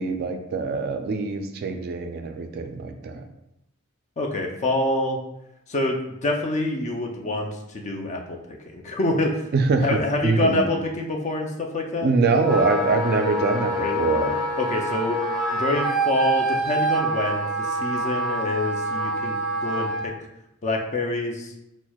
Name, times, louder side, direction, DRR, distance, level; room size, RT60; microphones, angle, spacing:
voice 1, 0.0-3.3 9.5-10.7 12.0-14.4, right 4 dB, 45° right, 6 dB, 0.3 m, -24 dB
voice 2, 4.2-5.2 5.7-8.4 8.7-9.4 9.8-12.1 13.8-14.0 14.6-15.2 15.5-20.1 20.6-21.5, left 2 dB, 35° left, 2 dB, 0.4 m, -26 dB
Wind instrument woodwind instrument, 12.3-20.0, right 1 dB, 5° left, 0.9 m, -26 dB
6.0 x 2.0 x 2.2 m, 0.86 s
head